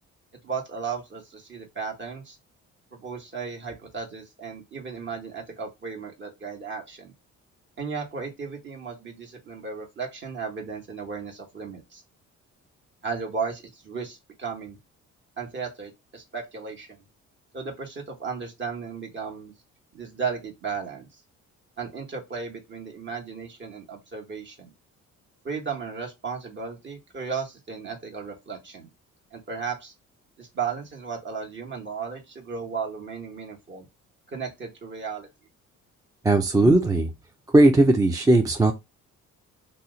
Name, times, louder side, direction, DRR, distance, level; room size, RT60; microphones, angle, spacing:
voice 1, 0.4-2.4 2.9-7.1 7.8-12.0 13.0-14.8 15.4-17.0 17.5-19.5 19.9-21.2 21.8-24.7 25.4-28.9 29.3-29.9 30.4-33.9 34.3-35.3, right 5 dB, 40° right, 1.2 m, -35 dB
voice 2, 36.2-37.1 37.5-38.7, right 2 dB, 10° right, 0.3 m, -18 dB
2.8 x 2.1 x 3.6 m
cardioid pair, 90°, 30 cm